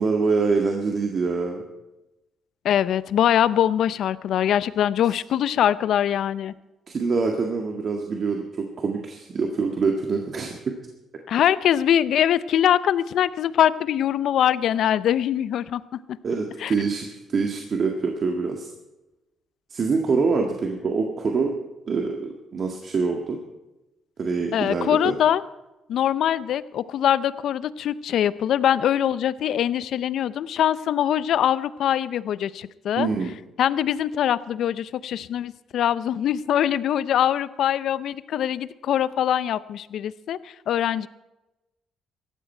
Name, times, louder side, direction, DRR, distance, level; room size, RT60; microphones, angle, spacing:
voice 1, 0.0-1.6 6.9-10.8 16.2-18.7 19.7-21.6 21.9-23.4 24.2-25.1 33.0-33.3, right 4 dB, 50° right, 2 dB, 1.8 m, -25 dB
voice 2, 2.6-6.5 11.3-16.0 16.6-16.7 24.5-25.4 25.9-33.1 33.6-41.1, left 10 dB, 75° left, 17 dB, 0.6 m, -23 dB
17.5 x 13.5 x 4.5 m, 1.0 s
cardioid pair, 90°, 0 cm